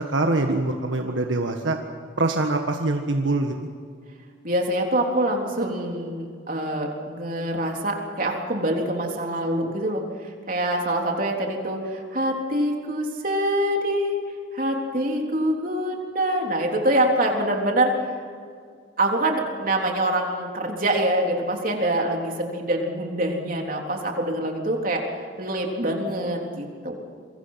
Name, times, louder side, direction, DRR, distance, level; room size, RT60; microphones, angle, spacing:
voice 1, 0.0-1.8 2.2-3.5, right 2 dB, 80° right, 4 dB, 1.5 m, -24 dB
voice 2, 4.4-10.0 10.5-14.2 14.5-17.9 19.0-25.0 25.4-27.0, right 1 dB, 45° right, 1 dB, 3.7 m, -25 dB
27.0 x 23.5 x 5.8 m, 2.2 s
head